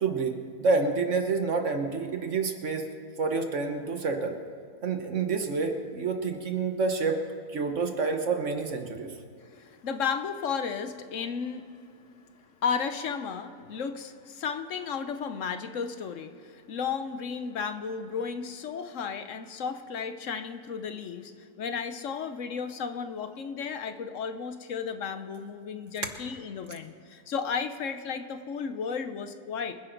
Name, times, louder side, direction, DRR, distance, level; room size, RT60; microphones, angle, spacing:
voice 1, 0.0-2.9 3.2-4.4 4.8-7.2 7.5-9.1, right 4 dB, 50° right, 6 dB, 1.2 m, -28 dB
voice 2, 9.4-11.6 12.3-29.7, left 6 dB, 60° left, 8 dB, 1.0 m, -34 dB
24.5 x 10.5 x 3.9 m, 2.3 s
omnidirectional pair, 1.7 m